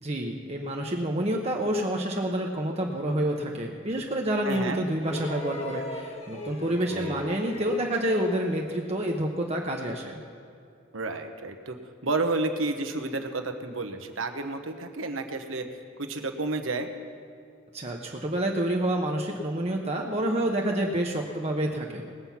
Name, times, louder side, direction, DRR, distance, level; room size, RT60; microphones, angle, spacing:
voice 1, 0.0-10.2 17.7-22.1, right 1 dB, 30° right, 0 dB, 0.9 m, -28 dB
voice 2, 4.4-4.8 6.9-7.3 10.9-11.8 12.0-15.7 16.0-16.9, right 3 dB, 75° right, 6 dB, 1.1 m, -31 dB
sound 1, 5.0-8.5 9.9-10.0, left 1 dB, 30° left, 1.4 m, -39 dB
20.0 x 7.7 x 5.8 m, 2.4 s
head